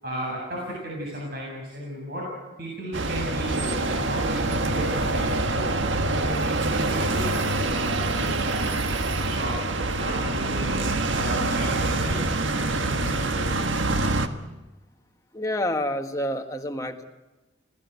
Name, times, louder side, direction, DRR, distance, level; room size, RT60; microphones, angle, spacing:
voice 1, 0.0-8.7 9.2-13.9, equal, 50° right, -3 dB, 7.7 m, -35 dB
sound 1, 2.9-14.3, right 2 dB, 75° right, 1.5 m, -25 dB
voice 2, 15.3-17.0, left 1 dB, 15° left, 4 dB, 1.5 m, -28 dB
27.5 x 17.5 x 8.2 m, 1.1 s
head